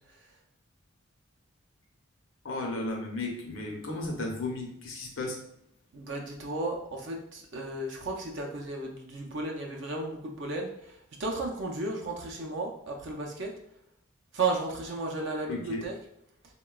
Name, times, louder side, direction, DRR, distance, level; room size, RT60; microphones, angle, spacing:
voice 1, 2.4-5.4 15.5-15.8, left 2 dB, 70° left, 1 dB, 0.7 m, -34 dB
voice 2, 5.9-13.5 14.3-16.0, right 2 dB, 60° right, 1 dB, 0.5 m, -34 dB
3.7 x 2.2 x 2.3 m, 0.76 s
head